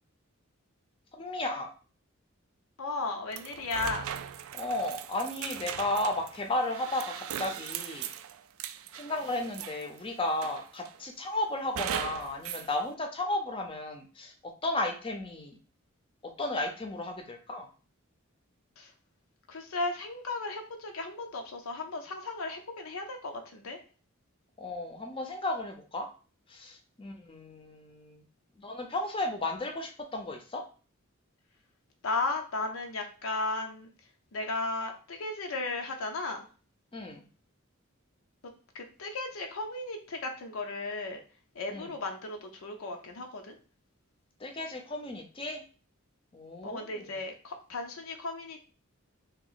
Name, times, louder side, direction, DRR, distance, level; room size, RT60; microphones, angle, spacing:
voice 1, 1.1-1.7 4.5-8.1 8.9-15.6 16.2-17.7 24.6-26.1 26.5-28.2 28.6-30.6 36.9-37.3 41.7-41.9 44.4-45.6 46.3-47.2, left 2 dB, 25° left, 4 dB, 0.6 m, -34 dB
voice 2, 2.8-4.0 18.8-18.9 19.5-23.8 32.0-33.9 34.3-36.4 38.7-41.2 41.6-43.6 46.6-48.7, left 3 dB, 75° left, 3 dB, 0.6 m, -35 dB
sound 1, 3.3-10.0 10.4-11.0 11.8-12.7, right 9 dB, 80° right, 0.3 m, -39 dB
2.9 x 2.9 x 4.0 m, 0.38 s
head